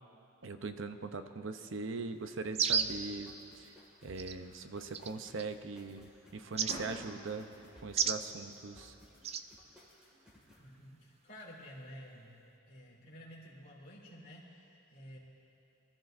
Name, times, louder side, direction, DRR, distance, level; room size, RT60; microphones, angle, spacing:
voice 1, 0.4-3.7 4.0-7.5 7.8-8.9, right 3 dB, 65° right, 9 dB, 0.7 m, -41 dB
sound 1, 2.5-3.0 4.2-4.3 4.9-5.4 6.6-6.8 7.9-8.2 9.2-9.4, right 7 dB, 30° right, 0.3 m, -31 dB
sound 2, 2.8-10.7, equal, 5° right, 2.0 m, -60 dB
sound 3, 3.9-14.1, right 1 dB, 85° right, 3.8 m, -56 dB
voice 2, 10.6-12.3 12.7-15.2, equal, 45° left, -5 dB, 3.0 m, -51 dB
25.0 x 13.5 x 2.6 m, 2.7 s
head